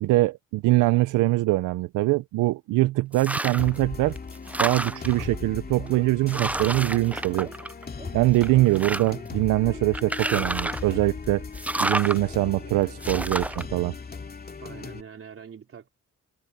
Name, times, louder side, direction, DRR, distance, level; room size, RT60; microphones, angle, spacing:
voice 1, 0.0-4.2 4.6-7.5 8.1-11.4 11.8-13.9, right 19 dB, 90° right, 0.6 m, -23 dB
sound 1, 3.1-3.8 4.2-5.2 5.9-6.0 6.3-8.0 8.4-9.3 9.9-10.9 11.5-12.2 13.0-13.6, right 1 dB, 5° right, 0.3 m, -30 dB
sound 2, 3.6-15.0, left 5 dB, 30° left, 2.3 m, -37 dB
sound 3, 5.3-5.5 5.8-6.0 6.3-6.5 6.8-7.0 7.4-7.6 8.0-8.1 8.5-8.7 9.1-9.3 9.7-9.8 10.2-10.4, right 2 dB, 20° right, 3.1 m, -46 dB
voice 2, 14.6-15.9, right 7 dB, 45° right, 3.8 m, -44 dB
cardioid pair, 90°, 30 cm